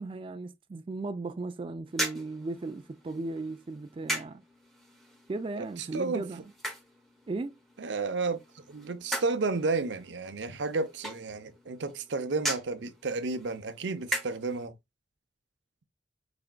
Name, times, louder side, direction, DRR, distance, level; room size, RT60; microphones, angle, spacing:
voice 1, 0.0-4.4 5.3-6.5 7.3-7.5, right 3 dB, 30° right, 0.3 m, -36 dB
sound 1, 1.9-14.7, right 1 dB, ahead, 0.9 m, -40 dB
voice 2, 5.9-6.3 7.8-8.4 8.7-14.7, right 3 dB, 80° right, 0.6 m, -32 dB
4.9 x 3.4 x 2.2 m
head